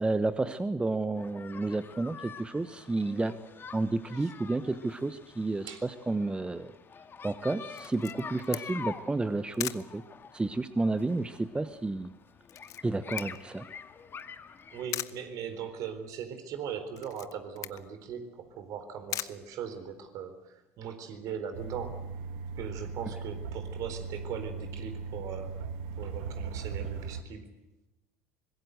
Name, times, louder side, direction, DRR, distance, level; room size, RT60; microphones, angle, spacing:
voice 1, 0.0-3.3 3.7-6.7 7.2-10.0 10.3-12.1 12.8-13.6, right 2 dB, 15° right, 12 dB, 1.1 m, -31 dB
sound 1, 1.1-14.9, left 6 dB, 30° left, 1.9 m, -46 dB
Camera, 7.8-20.3, left 13 dB, 50° left, 0.9 m, -43 dB
voice 2, 14.7-22.0 22.6-25.7 26.0-27.5, right 7 dB, 55° right, 8 dB, 3.9 m, -39 dB
sound 2, 21.5-27.2, right 5 dB, 70° right, 1.4 m, -38 dB
24.5 x 21.0 x 8.0 m, 0.95 s
hypercardioid pair, 70°, 7 cm